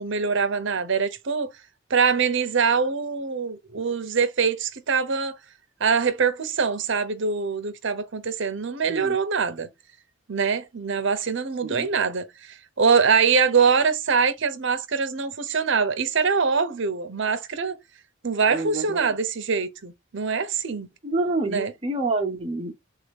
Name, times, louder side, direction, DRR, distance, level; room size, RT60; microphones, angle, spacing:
voice 1, 0.0-1.5 1.9-5.3 5.8-9.7 10.3-17.8 18.2-20.9 21.4-21.7, right 5 dB, 60° right, 0.7 m, -23 dB
voice 2, 18.5-19.2 21.0-22.7, right 2 dB, 25° right, 0.7 m, -28 dB
3.9 x 2.8 x 3.4 m
head